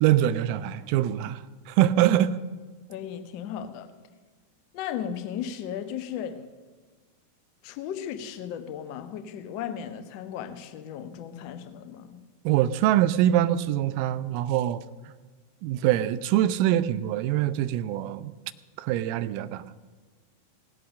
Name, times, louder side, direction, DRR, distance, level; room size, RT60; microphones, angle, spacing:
voice 1, 0.0-2.4 12.4-14.8 15.6-18.3 18.8-19.6, right 12 dB, 45° right, 14 dB, 0.6 m, -24 dB
voice 2, 2.9-3.9 4.7-6.5 7.6-12.2, left 9 dB, 45° left, 9 dB, 1.2 m, -36 dB
17.5 x 8.4 x 6.5 m, 1.4 s
figure-of-eight pair, 90°, 0 cm